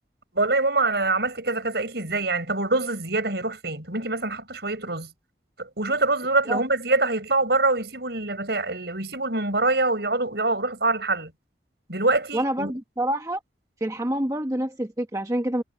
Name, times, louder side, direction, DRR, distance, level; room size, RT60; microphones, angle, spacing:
voice 1, 0.3-5.1 5.6-11.3 11.9-12.7, right 2 dB, 60° right, 7.1 m, -25 dB
voice 2, 12.3-13.4 13.8-15.6, right 1 dB, 20° right, 1.2 m, -27 dB
head